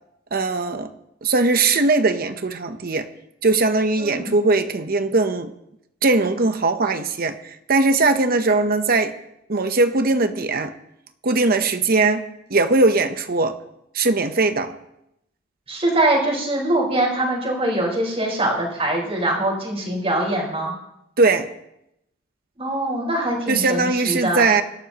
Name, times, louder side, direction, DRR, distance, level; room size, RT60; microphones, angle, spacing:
voice 1, 0.3-0.9 1.2-3.1 3.4-5.5 6.0-9.1 9.5-10.7 11.2-13.6 13.9-14.8 21.2-21.5 23.5-24.6, right 3 dB, 50° right, 8 dB, 0.9 m, -20 dB
voice 2, 4.0-4.3 15.7-20.7 22.6-24.4, right 1 dB, 30° right, -2 dB, 4.7 m, -23 dB
25.0 x 12.5 x 3.0 m, 0.81 s
head